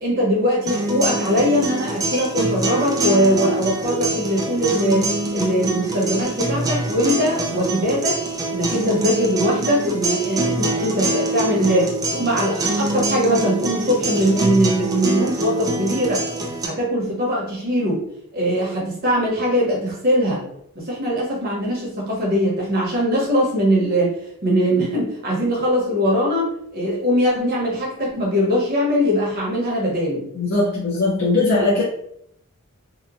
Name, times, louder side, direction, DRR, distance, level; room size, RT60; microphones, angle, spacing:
voice 1, 0.0-8.2 8.5-16.2 16.6-18.0 18.3-20.4 20.7-24.1 24.4-30.2, equal, 40° right, -3 dB, 1.0 m, -21 dB
sound 1, 0.7-16.7, right 2 dB, 15° right, 0.3 m, -25 dB
voice 2, 30.3-31.8, left 2 dB, 50° left, -6 dB, 0.6 m, -19 dB
2.9 x 2.1 x 2.5 m, 0.71 s
head